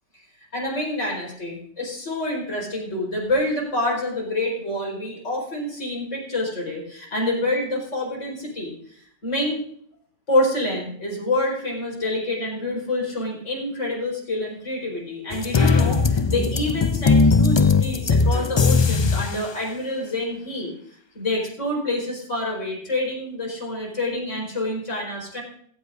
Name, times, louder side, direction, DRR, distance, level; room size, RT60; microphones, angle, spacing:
voice 1, 0.5-9.6 10.3-20.7 21.1-25.4, left 1 dB, 80° left, -1 dB, 5.0 m, -27 dB
sound 1, 15.3-19.4, left 4 dB, 40° left, 0.4 m, -19 dB
17.5 x 16.0 x 2.6 m, 0.63 s
omnidirectional pair, 1.3 m